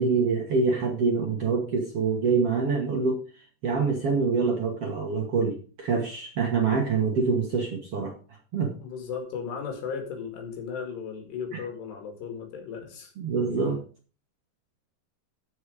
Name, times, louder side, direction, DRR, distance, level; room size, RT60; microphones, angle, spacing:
voice 1, 0.0-3.2 3.6-8.1 8.5-8.7 13.2-13.8, right 4 dB, 60° right, 1 dB, 1.6 m, -25 dB
voice 2, 8.8-13.1, left 6 dB, 80° left, 3 dB, 4.3 m, -36 dB
14.5 x 4.9 x 5.0 m, 0.37 s
omnidirectional pair, 4.7 m